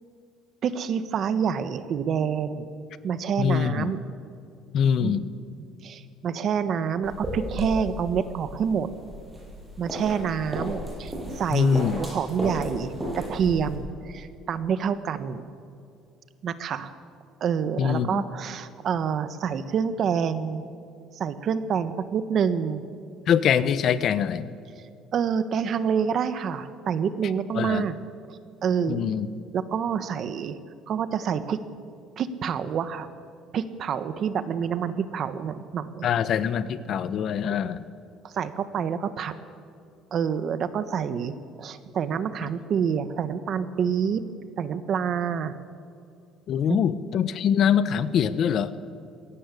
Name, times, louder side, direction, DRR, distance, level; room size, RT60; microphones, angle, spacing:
voice 1, 0.6-2.7 3.0-4.0 5.0-5.3 5.8-8.9 9.8-15.4 16.4-16.9 17.4-20.6 21.1-22.8 25.1-28.0 28.3-29.1 29.5-30.6 30.9-31.6 32.2-33.1 33.5-36.1 37.4-37.7 38.2-39.3 40.1-44.2 44.6-45.6 46.7-46.8, right 7 dB, 40° right, 12 dB, 1.3 m, -27 dB
voice 2, 3.4-3.9 4.7-5.3 11.5-12.0 17.8-18.2 23.3-24.5 27.5-27.9 28.9-29.3 36.0-37.9 42.4-42.5 46.5-48.8, left 8 dB, 45° left, 14 dB, 0.9 m, -24 dB
sound 1, 7.0-13.8, equal, 10° right, 7.3 m, -34 dB
21.5 x 17.0 x 9.9 m, 2.4 s
cardioid pair, 160°, 0 cm